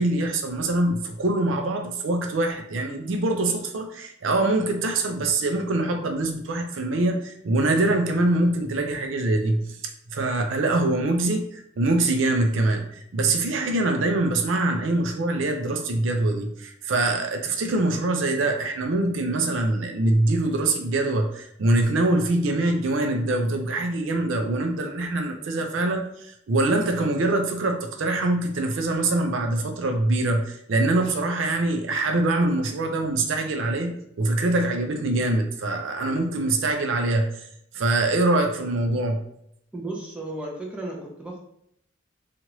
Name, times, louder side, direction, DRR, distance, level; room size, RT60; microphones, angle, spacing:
voice 1, 0.0-9.7 10.1-37.3 37.7-39.2, right 2 dB, 75° right, 4 dB, 0.4 m, -24 dB
voice 2, 39.7-41.4, right 2 dB, 5° right, -3 dB, 0.6 m, -34 dB
2.9 x 2.4 x 2.9 m, 0.72 s
head